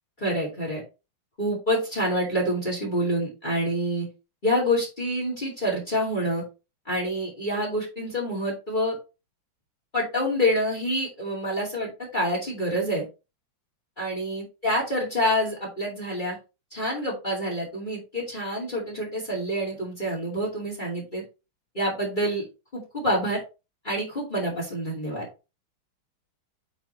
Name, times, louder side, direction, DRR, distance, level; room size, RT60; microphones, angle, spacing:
voice 1, 0.2-0.8 1.4-4.1 4.4-6.4 6.9-9.0 9.9-13.0 14.0-16.4 16.7-21.2 21.7-22.5 22.7-23.4 23.8-25.3, equal, 20° left, -3 dB, 2.6 m, -27 dB
9.0 x 4.3 x 3.1 m, 0.28 s
omnidirectional pair, 2.3 m